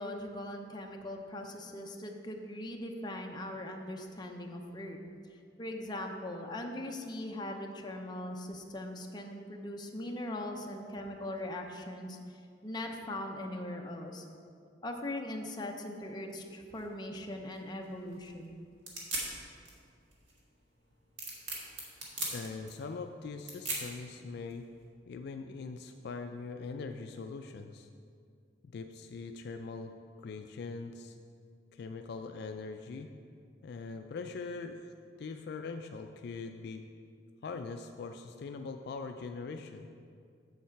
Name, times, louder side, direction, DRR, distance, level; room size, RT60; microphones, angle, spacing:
voice 1, 0.0-5.0 5.6-12.2 12.6-14.3 14.8-18.6, left 1 dB, 25° left, 2 dB, 0.7 m, -40 dB
sound 1, 16.7-24.8, right 2 dB, 75° right, 1.8 m, -42 dB
voice 2, 22.3-24.7 25.1-27.9 28.6-29.9 30.2-31.2 31.7-33.1 33.6-34.9 35.2-36.8 37.4-39.9, left 4 dB, 60° left, 6 dB, 0.3 m, -42 dB
7.3 x 7.2 x 4.5 m, 2.3 s
head